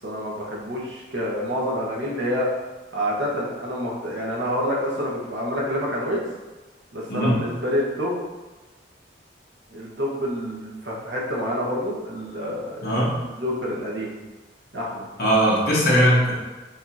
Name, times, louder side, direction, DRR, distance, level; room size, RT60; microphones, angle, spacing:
voice 1, 0.0-2.5 2.9-6.2 6.9-8.2 9.7-12.9 13.2-14.1 14.7-15.1, equal, 80° right, -4 dB, 1.1 m, -27 dB
voice 2, 7.1-7.4 12.8-13.1 15.2-16.3, equal, 60° left, -6 dB, 1.3 m, -19 dB
5.2 x 2.9 x 2.7 m, 1.2 s
head